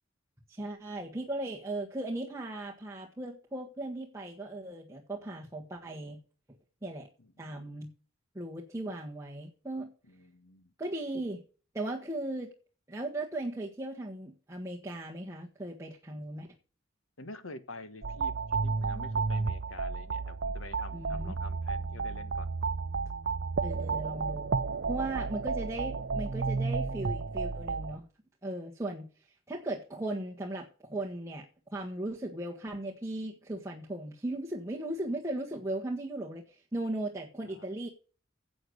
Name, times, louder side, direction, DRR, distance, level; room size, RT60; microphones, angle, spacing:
voice 1, 0.5-6.2 6.8-7.1 7.4-7.9 8.3-9.9 10.8-11.4 11.7-12.5 12.9-16.5 20.9-21.3 23.6-24.5 24.9-28.0 28.4-29.1 29.5-31.5 31.7-37.9, right 1 dB, 15° right, -2 dB, 1.6 m, -37 dB
voice 2, 7.2-7.6 10.0-10.7 17.2-22.5 37.4-37.7, left 2 dB, 80° left, 11 dB, 1.4 m, -47 dB
sound 1, 18.0-28.0, right 4 dB, 60° right, 0.6 m, -32 dB
10.5 x 7.9 x 6.5 m, 0.39 s
head